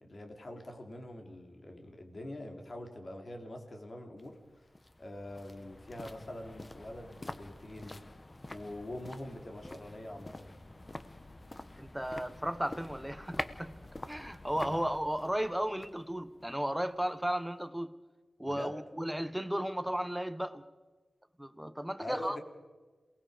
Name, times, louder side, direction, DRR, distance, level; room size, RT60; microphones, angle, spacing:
voice 1, 0.0-4.4 5.0-8.0 8.5-10.6 14.6-14.8 18.4-18.8 22.0-22.4, left 1 dB, 40° left, 3.3 m, -44 dB
sound 1, 4.2-17.4 17.6-17.7, left 2 dB, 25° left, 1.0 m, -47 dB
voice 2, 11.8-13.7 14.1-17.9 18.4-20.6 21.4-22.4, equal, 5° right, 1.1 m, -34 dB
28.0 x 19.5 x 5.1 m
wide cardioid pair, 110°, 0 cm